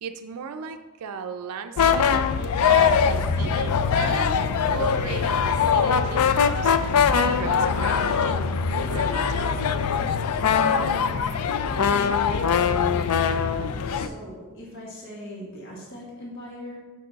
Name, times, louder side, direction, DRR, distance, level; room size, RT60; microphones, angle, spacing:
voice 1, 0.0-2.2 2.7-4.4 4.7-6.7 7.1-8.4 8.7-9.5, right 6 dB, 90° right, 7 dB, 0.4 m, -36 dB
sound 1, 1.8-14.1, left 6 dB, 85° left, 0.4 m, -22 dB
voice 2, 13.8-16.8, left 1 dB, 55° left, -4 dB, 1.6 m, -40 dB
6.8 x 4.7 x 4.0 m, 1.3 s
head